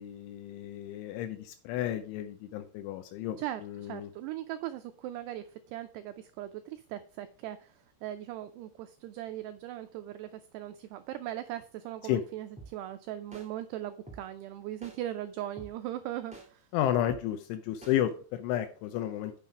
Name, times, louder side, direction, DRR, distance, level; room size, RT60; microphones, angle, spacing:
voice 1, 0.0-4.1 12.1-12.2 16.7-19.4, left 12 dB, 85° left, 7 dB, 3.2 m, -32 dB
voice 2, 3.4-16.7, right 13 dB, 85° right, 10 dB, 2.3 m, -39 dB
sound 1, 12.6-12.7 13.3-13.5 14.1-14.2 14.8-15.0 15.6-15.7 16.3-16.5 17.1-17.2 17.8-18.0, right 2 dB, 5° right, 1.0 m, -46 dB
9.1 x 6.1 x 4.9 m, 0.43 s
omnidirectional pair, 5.4 m